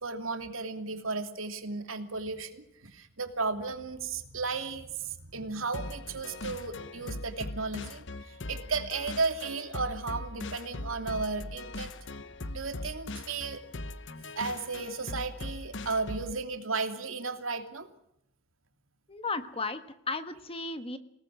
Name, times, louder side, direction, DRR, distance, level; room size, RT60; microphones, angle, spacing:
voice 1, 0.0-11.9 12.5-13.6 14.2-17.9, right 4 dB, 85° right, 7 dB, 2.8 m, -34 dB
sound 1, 5.7-16.4, left 2 dB, 65° left, 1.1 m, -40 dB
voice 2, 19.1-21.0, left 3 dB, 30° left, 10 dB, 1.6 m, -35 dB
28.0 x 18.5 x 6.3 m, 0.76 s
head